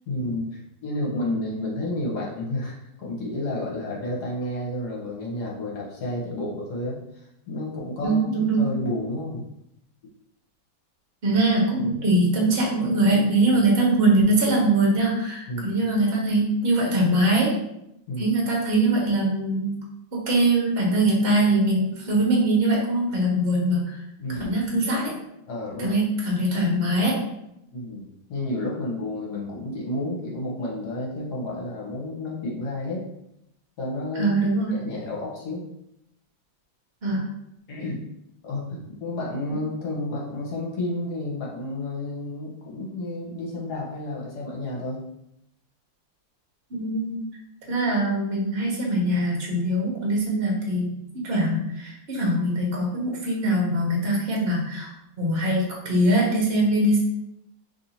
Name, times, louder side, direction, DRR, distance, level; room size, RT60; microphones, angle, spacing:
voice 1, 0.1-9.4 15.5-15.8 18.1-18.3 24.2-24.5 25.5-26.0 27.7-33.0 33.8-34.3 34.7-35.6 37.7-38.0 38.4-45.0, left 1 dB, 60° left, -3 dB, 1.4 m, -31 dB
voice 2, 8.0-8.6 11.2-17.6 18.2-19.8 20.1-24.0 24.4-25.1 25.8-27.2 34.2-34.7 37.0-37.2 46.7-47.2 47.7-54.9 55.2-57.0, right 1 dB, 40° right, -2 dB, 1.0 m, -22 dB
3.1 x 2.7 x 4.1 m, 0.81 s
omnidirectional pair, 2.1 m